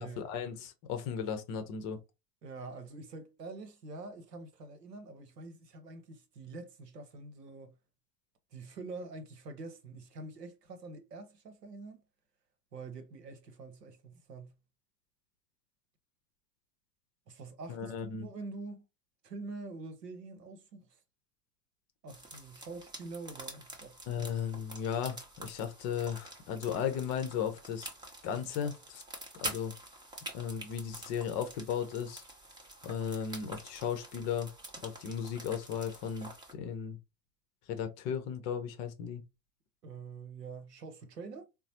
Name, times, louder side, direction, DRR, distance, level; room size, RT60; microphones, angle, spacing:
voice 1, 0.0-2.0 17.7-18.3 24.1-27.9 28.2-29.0 29.4-29.7 30.3-32.2 32.8-34.5 34.8-37.0 37.7-39.2, left 8 dB, 35° left, 0.7 m, -36 dB
voice 2, 2.4-7.8 8.5-12.0 12.7-14.6 17.3-18.9 19.2-21.0 22.0-24.0 39.8-41.5, right 3 dB, 80° right, 0.8 m, -46 dB
sound 1, 22.1-36.5, right 1 dB, 10° right, 0.8 m, -47 dB
3.9 x 2.0 x 2.7 m
figure-of-eight pair, 85°, 48 cm